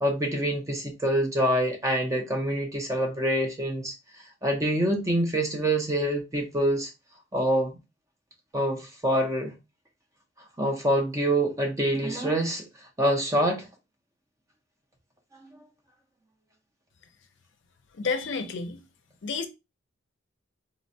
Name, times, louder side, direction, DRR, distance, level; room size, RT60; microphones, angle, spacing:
voice 1, 0.0-3.9 4.4-6.9 7.3-7.8 8.5-9.5 10.6-12.6 13.0-13.7, right 1 dB, 15° right, 0.5 m, -26 dB
voice 2, 18.0-18.8 19.2-19.5, left 4 dB, 60° left, 0.5 m, -30 dB
4.0 x 2.1 x 2.6 m
head